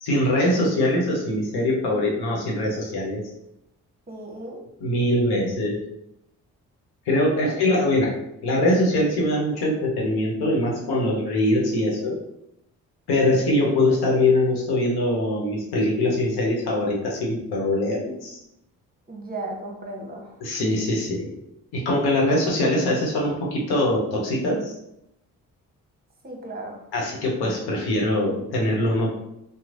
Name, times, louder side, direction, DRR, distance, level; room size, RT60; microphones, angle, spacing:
voice 1, 0.0-3.2 4.8-5.8 7.1-8.1 8.4-12.2 13.1-18.4 20.4-21.3 21.7-24.7 26.9-29.1, left 1 dB, 70° left, -3 dB, 0.9 m, -22 dB
voice 2, 4.1-4.6 7.3-7.6 19.1-20.4 26.2-26.8, right 2 dB, 25° right, 1 dB, 0.9 m, -35 dB
3.0 x 2.0 x 2.5 m, 0.82 s
hypercardioid pair, 40°, 40 cm